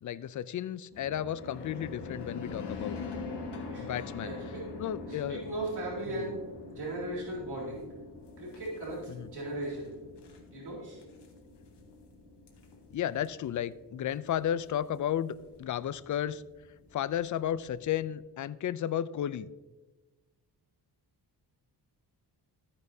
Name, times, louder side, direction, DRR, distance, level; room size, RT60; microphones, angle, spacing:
voice 1, 0.0-3.0 3.8-4.3 4.8-5.4 6.1-6.3 9.1-9.3 12.9-16.4 16.9-19.5, left 10 dB, 50° left, 16 dB, 0.4 m, -33 dB
sound 1, 0.9-18.0, left 3 dB, 80° left, 1.7 m, -44 dB
voice 2, 4.2-4.7 5.1-6.4 6.7-7.8 8.4-9.9 10.5-11.0, right 1 dB, 70° right, -4 dB, 3.8 m, -37 dB
13.5 x 9.6 x 2.7 m, 1.2 s
wide cardioid pair, 120°, 41 cm